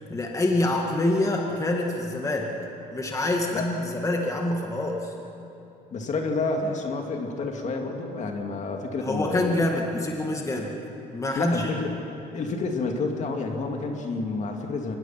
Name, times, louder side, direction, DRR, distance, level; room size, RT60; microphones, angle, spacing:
voice 1, 0.0-2.5 2.9-5.1 9.0-10.7 11.1-11.7, left 2 dB, 20° left, 0 dB, 2.0 m, -26 dB
voice 2, 5.9-9.6 11.4-11.9 12.3-15.0, left 3 dB, 45° left, 2 dB, 2.5 m, -29 dB
24.0 x 20.0 x 5.9 m, 2.9 s
cardioid pair, 110°, 17 cm